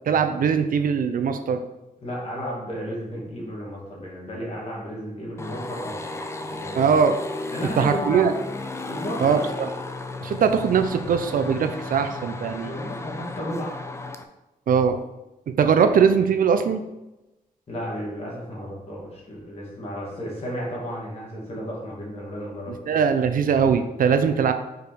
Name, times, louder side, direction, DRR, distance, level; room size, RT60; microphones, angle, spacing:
voice 1, 0.1-1.6 6.8-7.2 7.8-8.3 9.2-9.7 10.2-12.7 14.7-15.0 15.6-16.8 22.9-24.5, right 6 dB, 65° right, 8 dB, 0.6 m, -21 dB
voice 2, 2.0-6.1 6.4-6.9 7.5-8.2 8.8-9.4 12.7-13.8 17.7-22.7, equal, 40° left, -4 dB, 2.3 m, -33 dB
sound 1, 5.4-14.2, left 2 dB, 20° left, 0.5 m, -34 dB
5.2 x 4.9 x 4.6 m, 0.98 s
wide cardioid pair, 135°, 15 cm